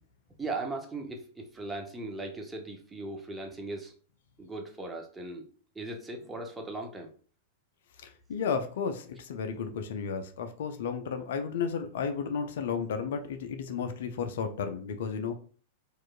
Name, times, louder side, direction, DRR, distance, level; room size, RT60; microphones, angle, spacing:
voice 1, 0.4-3.9 4.4-5.5 5.8-7.1, right 2 dB, 10° right, 2 dB, 0.7 m, -38 dB
voice 2, 8.0-15.3, left 6 dB, 55° left, 7 dB, 0.4 m, -33 dB
4.4 x 2.4 x 2.3 m, 0.42 s
figure-of-eight pair, 95°, 0 cm